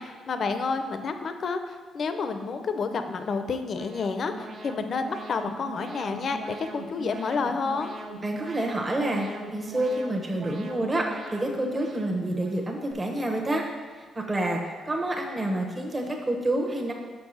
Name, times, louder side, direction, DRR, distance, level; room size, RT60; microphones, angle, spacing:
voice 1, 0.0-7.9, left 4 dB, 50° left, 8 dB, 0.6 m, -30 dB
Alarm, 3.1-12.9, right 2 dB, 55° right, 0.8 m, -42 dB
voice 2, 8.2-13.6 14.0-16.9, right 1 dB, 25° right, 0 dB, 1.0 m, -28 dB
6.1 x 4.6 x 5.6 m, 1.5 s
cardioid pair, 90°, 0 cm